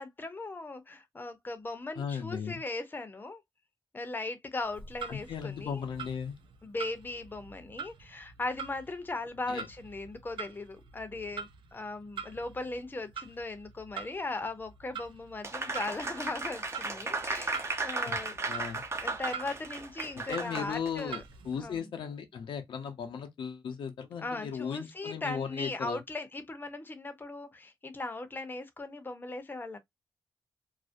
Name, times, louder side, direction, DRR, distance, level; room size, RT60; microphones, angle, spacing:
voice 1, 0.0-3.4 3.9-5.8 6.6-18.4 19.0-21.2 21.5-21.9 24.2-29.8, left 2 dB, 25° left, 0.6 m, -38 dB
voice 2, 2.0-2.6 5.1-6.4 9.5-9.7 18.1-18.2 18.5-18.8 20.3-21.2 21.4-26.0, left 7 dB, 85° left, 0.6 m, -36 dB
Clock, 4.6-21.8, right 6 dB, 85° right, 0.4 m, -46 dB
Applause, 15.4-21.0, right 3 dB, 30° right, 0.6 m, -35 dB
2.4 x 2.0 x 2.5 m
cardioid pair, 75°, 8 cm